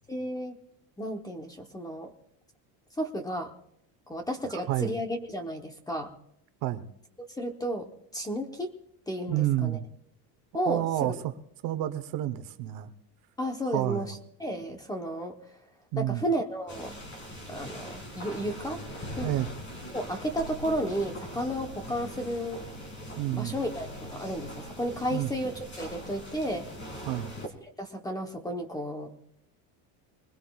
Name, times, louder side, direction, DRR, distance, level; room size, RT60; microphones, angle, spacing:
voice 1, 0.1-0.6 1.0-2.1 3.0-3.5 4.1-6.1 7.4-8.7 9.1-9.8 10.5-11.1 13.4-15.4 16.0-17.0 17.5-18.8 19.1-19.3 19.9-22.6 23.3-26.7 27.8-29.1, equal, 10° left, 4 dB, 0.8 m, -33 dB
voice 2, 4.4-4.9 6.6-6.9 9.3-9.8 10.6-11.3 11.6-12.9 13.7-14.1 15.9-16.2 19.2-19.5 23.2-23.6 25.1-25.3 27.1-27.3, right 14 dB, 50° right, 10 dB, 0.9 m, -29 dB
sound 1, 16.7-27.5, equal, 25° left, 2.4 m, -41 dB
21.5 x 20.5 x 2.3 m, 0.76 s
cardioid pair, 170°, 45 cm